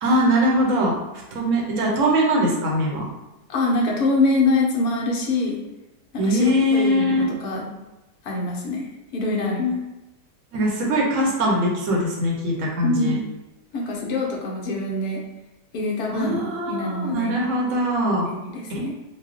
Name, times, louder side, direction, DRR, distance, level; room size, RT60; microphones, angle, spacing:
voice 1, 0.0-1.0 1.3-3.0 6.2-7.2 10.5-13.2 16.1-18.3 18.7-18.9, equal, 55° right, -2 dB, 1.0 m, -21 dB
voice 2, 3.5-5.6 6.1-7.8 8.2-9.8 12.8-13.2 13.7-15.2 15.7-16.4 16.7-17.4 18.3-18.9, left 2 dB, 65° left, -1 dB, 1.2 m, -24 dB
4.2 x 2.2 x 3.1 m, 1.0 s
omnidirectional pair, 1.8 m